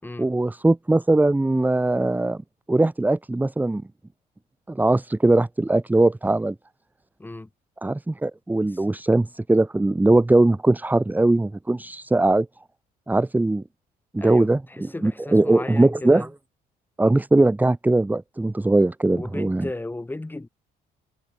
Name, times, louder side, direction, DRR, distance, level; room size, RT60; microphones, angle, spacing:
voice 1, 0.2-2.4 2.7-3.8 4.7-6.6 7.8-12.5 13.1-13.6 14.1-16.3 17.0-19.7, right 2 dB, 10° right, 2.1 m, -20 dB
voice 2, 14.2-16.3 19.1-20.5, left 2 dB, 10° left, 6.2 m, -35 dB
cardioid pair, 110°, 17 cm